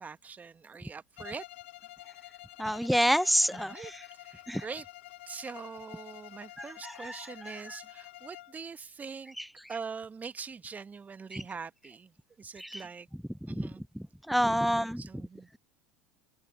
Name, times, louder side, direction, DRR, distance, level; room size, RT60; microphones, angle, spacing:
voice 1, 0.0-1.4 3.5-3.9 4.2-4.8 5.3-9.3 9.7-12.1 12.4-13.1 13.5-13.8 14.7-15.6, right 5 dB, 25° right, 1.6 m, -43 dB
Bowed string instrument, 1.2-8.6, left 16 dB, 75° left, 4.1 m, -49 dB
voice 2, 2.6-4.0 4.5-4.6 6.6-7.8 9.4-9.5 11.3-11.4 12.6-12.8 13.4-13.7 13.9-15.3, equal, ahead, 0.9 m, -29 dB
open air
hypercardioid pair, 75°, 7 cm